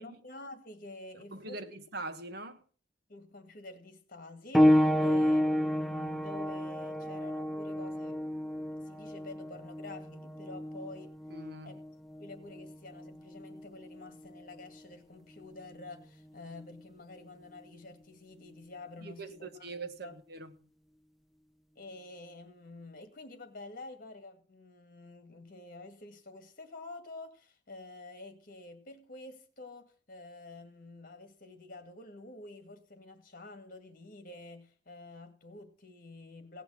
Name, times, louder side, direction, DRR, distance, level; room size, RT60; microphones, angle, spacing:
voice 1, 0.0-1.6 3.1-8.2 8.9-11.1 11.6-11.8 12.2-19.7 20.0-20.2 21.8-36.6, left 2 dB, 50° left, 2.2 m, -49 dB
voice 2, 1.3-2.6 11.3-11.8 19.0-20.5, right 2 dB, 60° right, 1.5 m, -42 dB
sound 1, 4.5-14.8 15.7-15.8 16.6-16.7, equal, ahead, 0.5 m, -30 dB
17.0 x 6.1 x 7.4 m
head